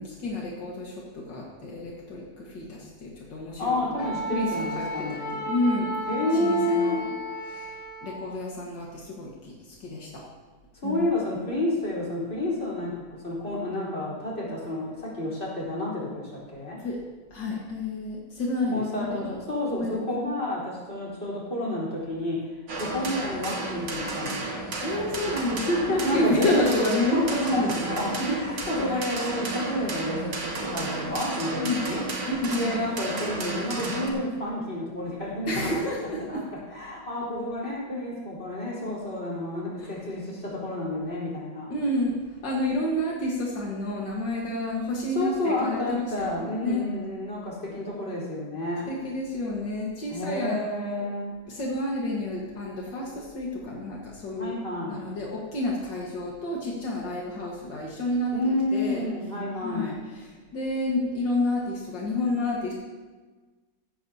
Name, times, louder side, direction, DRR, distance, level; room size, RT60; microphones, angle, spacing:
voice 1, 0.0-6.0 6.3-7.0 7.4-7.8 8.0-10.2 10.8-11.1 16.8-17.0 17.3-19.3 19.7-20.3 24.8-28.5 28.8-29.0 31.6-31.9 32.3-32.7 35.4-36.4 39.8-39.9 41.7-46.9 48.9-50.6 50.9-51.0 51.5-54.6 54.9-59.1 59.6-62.7, left 1 dB, 80° left, -3 dB, 2.3 m, -30 dB
voice 2, 3.6-5.4 6.1-7.0 10.7-16.8 18.7-22.5 22.8-24.7 25.7-26.7 27.1-32.0 32.5-35.7 36.3-36.4 36.7-41.7 45.1-48.9 50.1-51.3 54.3-55.0 58.3-60.0, left 1 dB, 35° left, -5 dB, 4.5 m, -30 dB
Wind instrument woodwind instrument, 4.0-8.2, right 1 dB, 10° left, 2.1 m, -34 dB
sound 1, 22.7-34.1, right 3 dB, 80° right, 2.4 m, -32 dB
15.5 x 14.0 x 2.8 m, 1.3 s
omnidirectional pair, 1.9 m